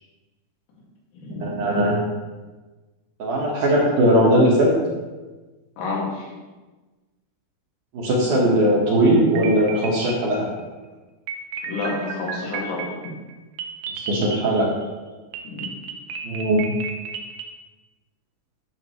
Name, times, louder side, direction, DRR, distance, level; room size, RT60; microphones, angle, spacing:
voice 1, 1.4-2.0 3.2-4.7 7.9-10.5 14.0-14.7 16.2-16.7, right 1 dB, 60° right, -3 dB, 2.4 m, -19 dB
voice 2, 5.8-6.3 11.7-12.9 15.4-15.7, left 3 dB, 85° left, -4 dB, 4.5 m, -29 dB
sound 1, 9.2-10.6 11.3-14.9 15.3-17.5, right 6 dB, 75° right, 2.8 m, -33 dB
12.0 x 6.6 x 3.1 m, 1.2 s
omnidirectional pair, 5.0 m